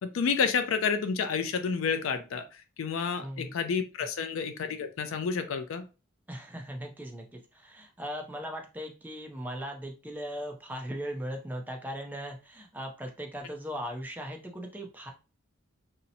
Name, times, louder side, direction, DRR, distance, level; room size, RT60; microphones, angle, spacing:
voice 1, 0.0-2.4 2.8-5.8, left 6 dB, 75° left, 8 dB, 0.4 m, -29 dB
voice 2, 3.2-3.7 4.0-4.1 6.3-15.1, equal, 10° right, 2 dB, 0.4 m, -38 dB
2.8 x 2.0 x 2.6 m, 0.31 s
head